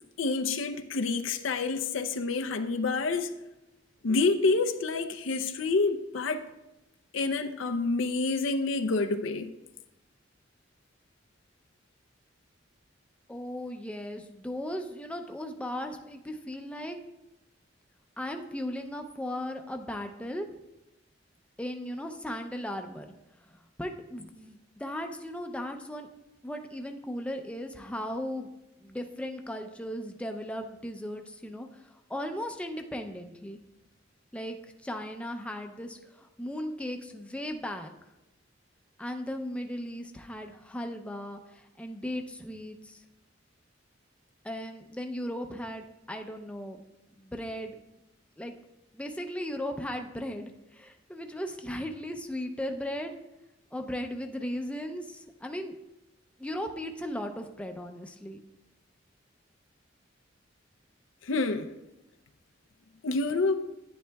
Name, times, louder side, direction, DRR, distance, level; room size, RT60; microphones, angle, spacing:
voice 1, 0.2-3.3 4.0-6.5 7.1-9.5 61.2-61.7 63.0-63.6, left 3 dB, 90° left, 0.6 m, -28 dB
voice 2, 13.3-17.0 18.2-20.5 21.6-23.1 23.8-26.1 26.4-28.5 28.8-31.7 32.1-33.6 34.3-34.6 34.8-37.9 39.0-41.4 41.8-43.0 44.4-46.8 47.2-47.8 48.4-48.6 48.9-53.1 53.7-55.7 56.4-58.4, left 1 dB, 5° left, 0.5 m, -37 dB
10.0 x 9.6 x 2.3 m
head